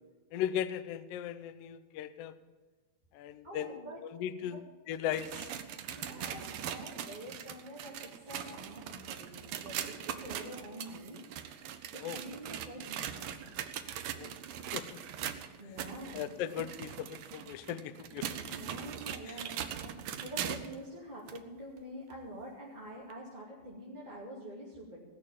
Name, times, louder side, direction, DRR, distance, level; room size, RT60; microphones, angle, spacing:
voice 1, 0.3-2.3 3.1-5.5 12.0-12.2 14.1-14.3 14.7-15.3 16.1-18.5 19.3-19.4, left 10 dB, 90° left, 13 dB, 1.4 m, -38 dB
voice 2, 3.4-4.0 4.4-4.6 5.9-11.2 11.9-13.4 15.6-16.3 18.5-20.0 20.2-25.0, equal, 15° right, -7 dB, 2.1 m, -46 dB
sound 1, 4.9-20.8 21.3-21.4 22.1-22.2 23.1-23.2, right 9 dB, 85° right, 1.2 m, -41 dB
17.5 x 6.6 x 8.8 m, 1.3 s
omnidirectional pair, 3.6 m